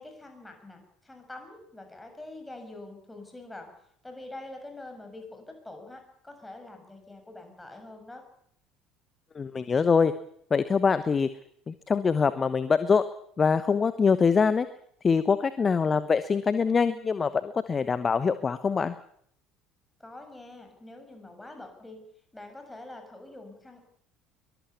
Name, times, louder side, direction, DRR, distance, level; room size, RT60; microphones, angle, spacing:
voice 1, 0.0-3.7 4.0-8.2 20.0-22.0 22.3-23.8, left 2 dB, 10° left, 5 dB, 6.9 m, -45 dB
voice 2, 9.3-10.1 10.5-11.3 11.7-13.0 13.4-14.7 15.0-18.9, left 5 dB, 25° left, 14 dB, 1.0 m, -24 dB
23.0 x 20.5 x 7.2 m, 0.66 s
figure-of-eight pair, 60°, 0 cm